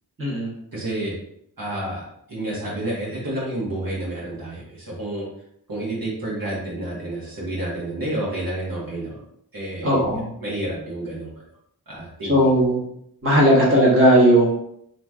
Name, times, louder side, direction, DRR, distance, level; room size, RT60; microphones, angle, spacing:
voice 1, 0.2-0.5 9.8-10.2 12.3-12.8 13.2-14.4, equal, 30° right, -6 dB, 1.4 m, -16 dB
voice 2, 0.7-1.2 1.6-5.3 5.7-9.2 9.5-11.4 11.9-12.4, right 1 dB, 60° right, -6 dB, 1.5 m, -30 dB
3.0 x 3.0 x 3.6 m, 0.73 s
wide cardioid pair, 75°, 39 cm